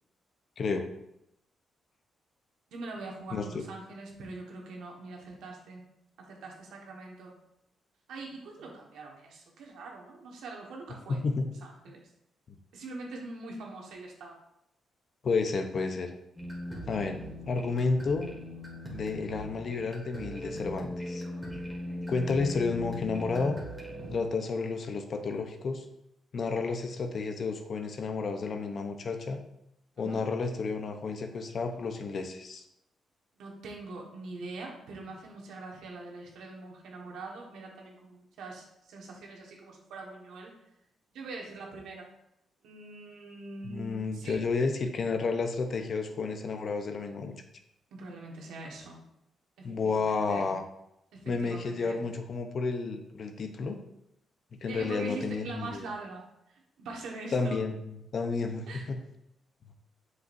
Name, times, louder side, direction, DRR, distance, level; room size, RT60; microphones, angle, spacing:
voice 1, 0.6-0.9 3.3-3.6 11.1-11.5 12.5-12.6 15.2-16.1 16.9-18.3 18.9-21.2 22.1-23.6 24.1-25.8 26.3-29.4 30.0-32.6 43.6-47.3 49.6-50.6 51.3-53.8 54.6-55.9 57.3-57.8 58.1-59.0, left 4 dB, 50° left, 6 dB, 0.8 m, -31 dB
voice 2, 2.7-7.3 8.1-11.2 11.6-12.1 12.7-14.4 29.9-30.3 33.4-40.5 41.1-42.1 42.6-44.4 47.9-49.0 49.6-50.5 51.1-52.0 54.7-57.6 58.7-58.8, right 2 dB, 90° right, 0 dB, 1.6 m, -43 dB
sound 1, 16.4-24.2, equal, 5° right, 1.9 m, -39 dB
7.7 x 6.4 x 2.7 m, 0.82 s
cardioid pair, 100°, 0 cm